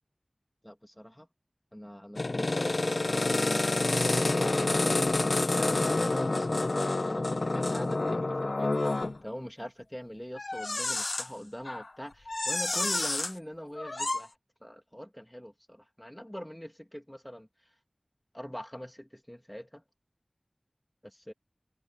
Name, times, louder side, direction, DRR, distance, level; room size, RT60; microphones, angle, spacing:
voice 1, 0.6-1.3 1.7-8.7 9.2-14.3 14.6-17.5 18.3-19.8 21.0-21.3, equal, 10° left, 2.6 m, -42 dB
sound 1, 2.2-9.2 10.4-11.3 11.7-11.9 12.3-13.3 13.8-14.2, left 2 dB, 70° left, 0.7 m, -28 dB
wide cardioid pair, 45°, 0 cm